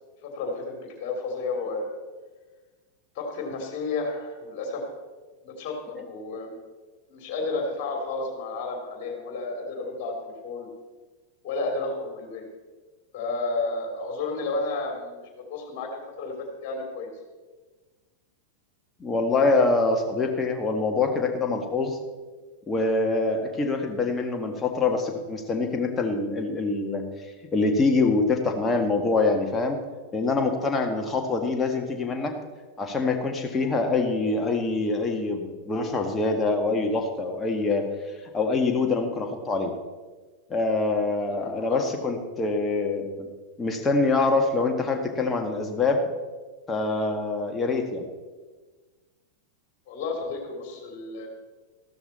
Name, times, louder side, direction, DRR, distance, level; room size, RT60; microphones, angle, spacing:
voice 1, 0.2-1.9 3.1-4.8 5.4-6.5 7.1-10.7 11.4-12.4 13.1-17.1 41.2-41.9 49.9-51.3, left 3 dB, 40° left, 2 dB, 3.2 m, -32 dB
voice 2, 19.0-22.0 22.7-27.0 27.5-29.8 30.1-32.3 32.8-37.9 38.3-39.7 40.5-43.3 43.6-46.0 46.7-48.1, left 3 dB, 15° left, 3 dB, 1.7 m, -25 dB
14.0 x 12.5 x 4.3 m, 1.3 s
figure-of-eight pair, 90°, 0 cm